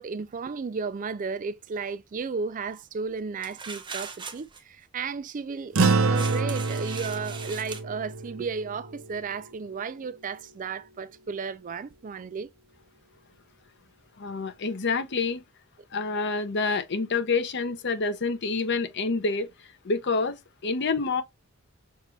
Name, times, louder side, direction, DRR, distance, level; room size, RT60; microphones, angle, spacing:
voice 1, 0.0-12.5, right 5 dB, 40° right, 0.4 m, -34 dB
sound 1, 3.4-4.6 5.8-7.8, right 5 dB, 25° right, 0.8 m, -40 dB
sound 2, 5.7-10.4, right 4 dB, 75° right, 0.7 m, -28 dB
voice 2, 14.2-15.4 15.9-19.5 19.8-20.4 20.6-21.2, left 4 dB, 55° left, 0.8 m, -27 dB
6.5 x 2.5 x 3.2 m
head